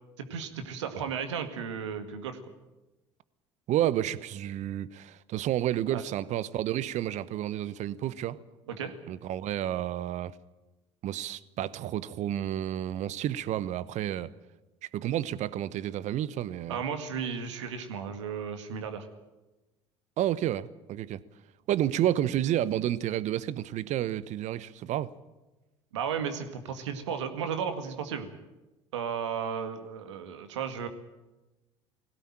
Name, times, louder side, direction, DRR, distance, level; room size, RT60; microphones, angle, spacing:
voice 1, 0.2-2.4 5.9-6.0 8.7-8.9 16.7-19.1 25.9-28.3 28.9-30.9, right 7 dB, 80° right, 8 dB, 2.0 m, -34 dB
voice 2, 3.7-8.4 9.1-10.3 11.0-14.3 14.8-16.8 20.2-21.2 21.7-25.1, right 12 dB, 50° right, 17 dB, 1.0 m, -30 dB
20.5 x 17.0 x 8.9 m, 1.1 s
hypercardioid pair, 65°, 15 cm